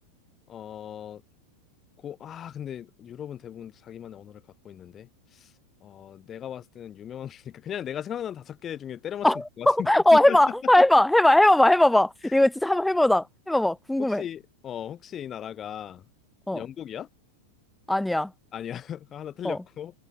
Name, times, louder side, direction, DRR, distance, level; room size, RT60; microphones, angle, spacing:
voice 1, 0.5-1.2 2.0-5.1 5.4-5.5 5.8-9.3 9.6-10.4 14.0-16.0 16.5-17.1 18.5-19.9, left 10 dB, 25° left, 3.8 m, -37 dB
voice 2, 9.2-14.2 16.5-16.6 17.9-18.3 19.4-19.6, left 1 dB, 5° left, 0.7 m, -20 dB
figure-of-eight pair, 90°, 0 cm